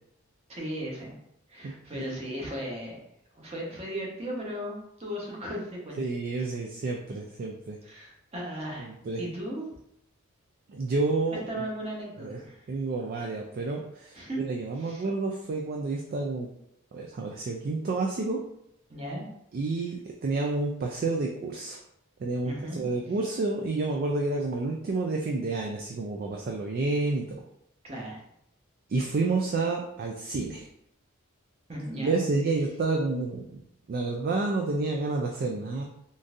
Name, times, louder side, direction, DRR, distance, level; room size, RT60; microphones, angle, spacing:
voice 1, 0.5-1.1 1.5-3.0 3.3-6.0 7.8-9.7 11.3-12.7 14.1-14.4 14.8-15.1 18.9-19.2 22.4-22.8 27.8-28.2 31.7-32.1, equal, 30° right, -3 dB, 0.8 m, -36 dB
voice 2, 1.6-2.2 6.0-7.8 8.8-9.2 10.7-11.4 12.2-12.4 12.7-16.5 16.9-18.4 19.5-21.8 22.2-27.4 28.9-30.7 31.9-33.6 33.9-35.8, right 3 dB, 45° right, 0 dB, 0.3 m, -29 dB
3.7 x 2.6 x 2.4 m, 0.75 s
head